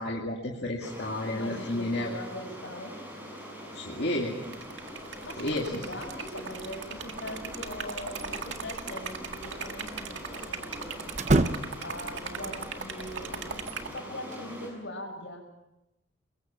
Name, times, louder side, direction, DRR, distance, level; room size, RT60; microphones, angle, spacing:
voice 1, 0.0-2.1 3.7-4.3 5.4-5.6, left 1 dB, 60° left, -1 dB, 2.4 m, -31 dB
sound 1, 0.8-14.7, equal, 10° right, 6.8 m, -43 dB
voice 2, 1.3-3.0 5.2-11.2 11.8-13.5 13.7-15.5, left 1 dB, 80° left, 4 dB, 5.7 m, -41 dB
Liquid, 4.4-14.0, right 6 dB, 85° right, 1.9 m, -39 dB
sound 2, 8.2-8.9 9.1-9.2 11.1-12.0 13.6-14.5, right 2 dB, 40° right, 0.8 m, -28 dB
27.0 x 22.5 x 5.8 m, 0.91 s
head